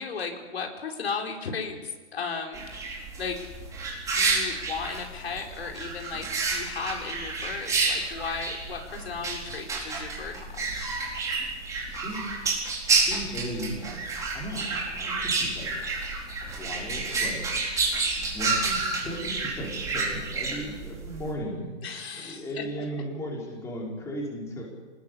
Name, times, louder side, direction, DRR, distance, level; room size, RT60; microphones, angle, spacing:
voice 1, 0.0-3.7 4.1-10.9 21.8-22.6, left 5 dB, 60° left, 2 dB, 4.9 m, -35 dB
sound 1, 2.5-21.3, right 4 dB, 10° right, 4.3 m, -30 dB
voice 2, 11.9-12.4 12.9-14.0 14.3-15.7 16.4-17.4 18.3-21.8 22.1-24.6, equal, 10° left, -2 dB, 5.3 m, -36 dB
25.5 x 20.5 x 8.7 m, 1.3 s
hypercardioid pair, 155°, 35 cm